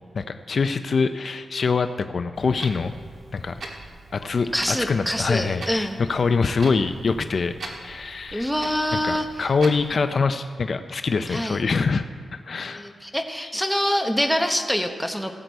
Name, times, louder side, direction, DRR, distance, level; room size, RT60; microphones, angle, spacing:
voice 1, 0.1-2.9 3.3-3.5 4.1-8.5 9.0-12.0 12.3-12.9, left 4 dB, 50° left, 9 dB, 0.4 m, -24 dB
Clock, 2.3-9.9, right 2 dB, 55° right, 1.5 m, -41 dB
voice 2, 4.5-6.0 8.3-9.4 11.3-11.6 12.6-15.4, equal, ahead, 4 dB, 0.9 m, -25 dB
17.0 x 8.0 x 4.6 m, 2.1 s
wide cardioid pair, 140°, 0 cm